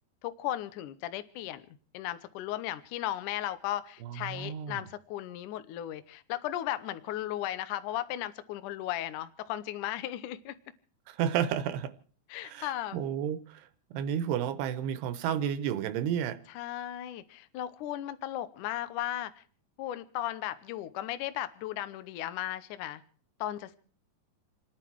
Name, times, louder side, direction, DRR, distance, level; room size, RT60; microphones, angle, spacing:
voice 1, 0.2-1.6 1.9-10.5 12.3-13.0 16.5-19.4 19.8-23.0 23.4-23.8, left 13 dB, 85° left, 1.8 m, -36 dB
voice 2, 4.0-4.8 11.1-11.9 12.4-13.7 13.9-16.4, right 9 dB, 80° right, 2.8 m, -32 dB
29.0 x 9.9 x 4.6 m
omnidirectional pair, 5.0 m